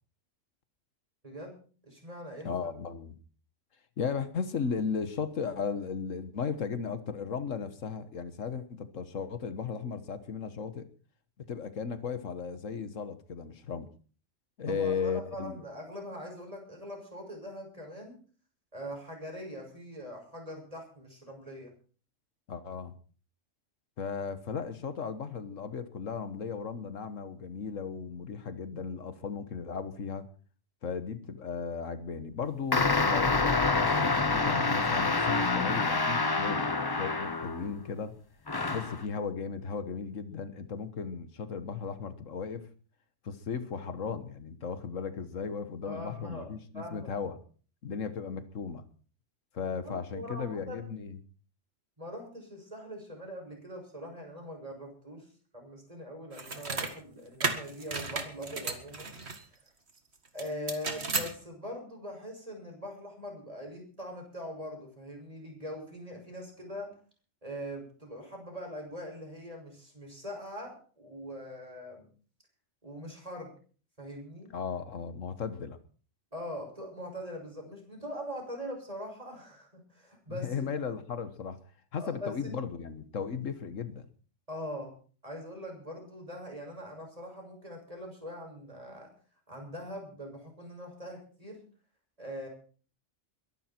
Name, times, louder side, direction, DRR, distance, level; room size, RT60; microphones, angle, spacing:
voice 1, 1.2-1.6 1.8-2.5 14.7-18.2 18.7-21.7 45.8-46.5 46.7-47.1 49.8-50.8 52.0-55.3 55.5-59.2 60.3-66.9 67.4-72.1 72.8-73.5 74.0-74.5 76.3-80.6 82.0-82.5 84.5-84.9 85.2-89.1 89.5-91.6 92.2-92.5, equal, 30° right, 1 dB, 6.6 m, -42 dB
voice 2, 2.4-3.2 4.0-10.9 11.5-13.9 14.6-15.6 22.5-22.9 24.0-30.3 30.8-36.6 37.0-38.1 38.7-42.7 43.2-47.4 47.8-48.8 49.5-51.2 74.5-75.8 80.3-81.6 81.9-84.1, left 6 dB, 85° left, 11 dB, 1.7 m, -36 dB
sound 1, 32.7-37.8 38.5-39.0, left 3 dB, 20° left, 0.8 m, -27 dB
sound 2, 56.3-56.9 57.4-59.4 60.4-61.3, right 4 dB, 55° right, 2.1 m, -33 dB
22.5 x 12.0 x 4.5 m, 0.41 s
omnidirectional pair, 1.3 m